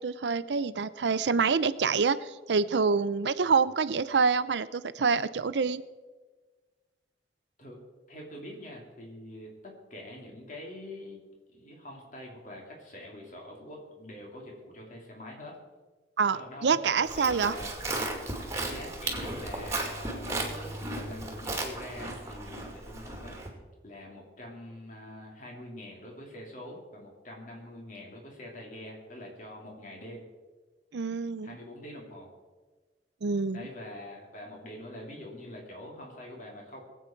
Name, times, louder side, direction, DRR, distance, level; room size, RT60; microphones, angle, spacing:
voice 1, 0.0-5.8 16.2-17.6 30.9-31.6 33.2-33.7, right 5 dB, 80° right, 15 dB, 0.5 m, -26 dB
voice 2, 8.1-11.2 11.5-15.6 16.3-17.7 18.7-23.4 23.8-30.2 31.4-32.3 33.5-36.8, left 1 dB, 45° left, -1 dB, 3.1 m, -45 dB
Livestock farm animals working animals, 17.0-23.5, right 2 dB, 15° right, 2.3 m, -35 dB
22.5 x 8.4 x 4.5 m, 1.3 s
head